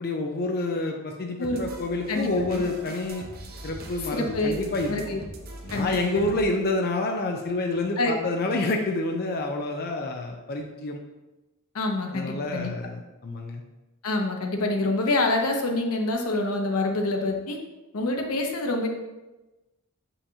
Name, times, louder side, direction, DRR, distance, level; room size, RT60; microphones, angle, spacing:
voice 1, 0.0-3.2 3.6-5.0 5.6-11.0 12.1-13.6, left 2 dB, 45° left, 2 dB, 0.6 m, -28 dB
sound 1, 1.4-6.4, right 1 dB, 45° right, 0.8 m, -42 dB
voice 2, 2.1-2.6 4.1-4.5 4.9-5.2 5.7-6.3 8.0-8.1 11.7-12.7 14.0-17.6 17.9-18.9, left 2 dB, 80° left, 3 dB, 0.9 m, -26 dB
6.9 x 5.6 x 2.8 m, 1.1 s
head